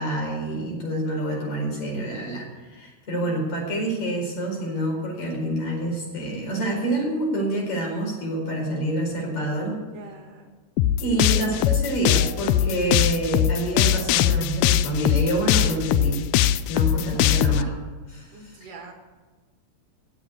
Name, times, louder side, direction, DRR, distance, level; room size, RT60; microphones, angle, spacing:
voice 1, 0.0-9.8 11.0-16.2 16.7-17.7 18.1-18.7, right 1 dB, 55° left, -1 dB, 5.9 m, -27 dB
voice 2, 3.1-3.5 9.9-10.5 11.3-11.8 18.3-18.9, right 3 dB, 75° right, 3 dB, 3.6 m, -41 dB
sound 1, 10.8-17.6, left 12 dB, 85° left, 1.6 m, -20 dB
17.0 x 7.7 x 8.4 m, 1.3 s
omnidirectional pair, 3.8 m